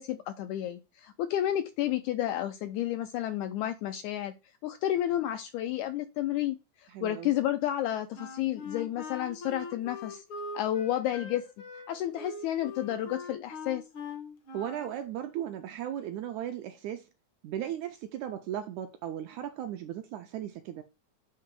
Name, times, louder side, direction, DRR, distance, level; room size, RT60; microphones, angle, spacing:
voice 1, 0.0-4.3 4.6-10.2 10.5-11.4 11.9-13.8, left 12 dB, 80° left, 1.7 m, -31 dB
voice 2, 6.9-7.3 14.5-17.1 17.4-20.8, right 11 dB, 80° right, 1.7 m, -36 dB
Wind instrument woodwind instrument, 8.2-15.0, left 3 dB, 65° left, 1.3 m, -42 dB
8.1 x 2.9 x 4.6 m
omnidirectional pair, 3.9 m